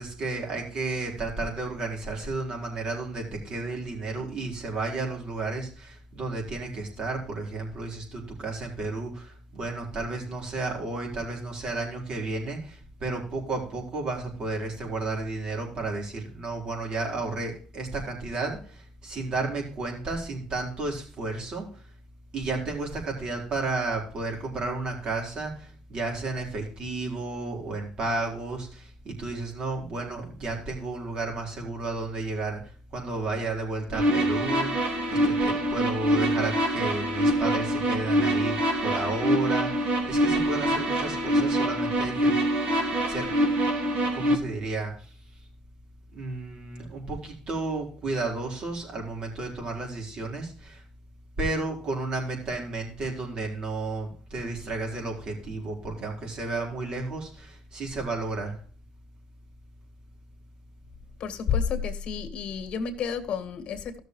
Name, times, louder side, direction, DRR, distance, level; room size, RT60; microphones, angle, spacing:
voice 1, 0.0-21.8 22.3-42.3 43.1-43.3 44.0-45.1 46.1-50.8 51.4-58.6, right 3 dB, 45° right, 4.3 m, -32 dB
sound 1, 33.9-44.3, right 1 dB, 65° right, 2.1 m, -25 dB
voice 2, 61.2-64.0, left 6 dB, 50° left, 1.9 m, -30 dB
14.5 x 6.5 x 3.1 m
cardioid pair, 105°, 2 cm